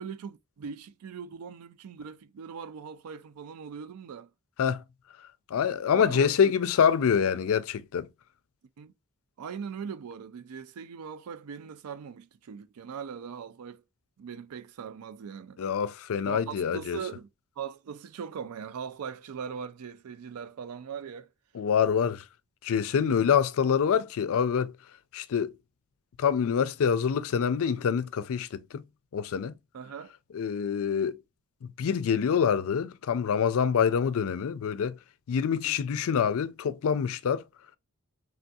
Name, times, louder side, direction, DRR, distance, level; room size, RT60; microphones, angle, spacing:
voice 1, 0.0-4.3 5.9-6.5 8.8-8.9 9.4-13.8 14.2-15.6 16.3-17.3 17.6-21.3 23.0-23.2 29.7-30.1 35.6-35.8, right 6 dB, 80° right, 0.4 m, -40 dB
voice 2, 5.5-8.1 15.6-17.0 21.5-22.2 22.6-24.7 25.1-25.5 26.2-28.8 29.1-29.5 30.3-31.2 31.8-35.0 35.3-37.4, left 7 dB, 65° left, 0.4 m, -26 dB
3.4 x 2.6 x 2.2 m
head